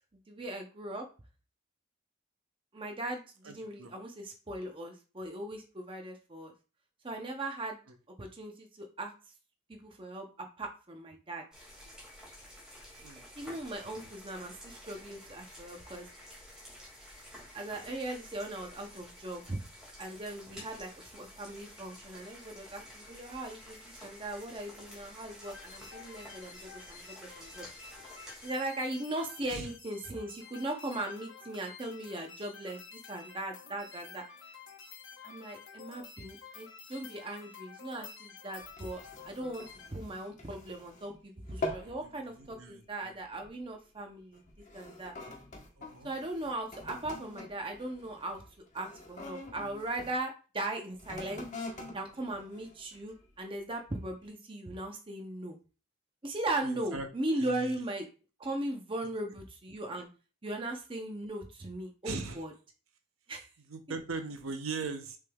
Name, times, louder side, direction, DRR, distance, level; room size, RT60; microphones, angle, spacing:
voice 1, 0.3-1.0 2.7-6.5 7.0-7.8 8.2-9.1 9.7-11.4 13.4-16.1 17.5-19.6 20.0-27.7 28.4-32.8 33.1-34.2 35.2-39.7 39.9-44.4 44.7-45.1 46.0-48.4 48.7-51.4 51.9-55.6 56.2-58.0 58.4-60.1 60.4-62.5 63.3-63.4, right 1 dB, 25° right, 3 dB, 0.7 m, -38 dB
voice 2, 3.4-3.9 13.0-13.3 13.8-14.0 29.5-29.7 41.8-43.2 45.8-46.1 56.6-57.1 57.3-57.8 62.0-62.4 63.6-65.2, right 4 dB, 70° right, 6 dB, 0.7 m, -40 dB
sound 1, 11.5-28.5, equal, 5° right, 2.1 m, -51 dB
sound 2, 25.4-39.9, left 6 dB, 55° left, 0.9 m, -51 dB
sound 3, 38.6-41.2 41.4-42.0 42.4-42.7 43.4-43.6 44.3-50.2 50.9-53.3 53.9-54.0, left 2 dB, 35° left, 1.1 m, -44 dB
6.4 x 3.4 x 2.3 m, 0.34 s
head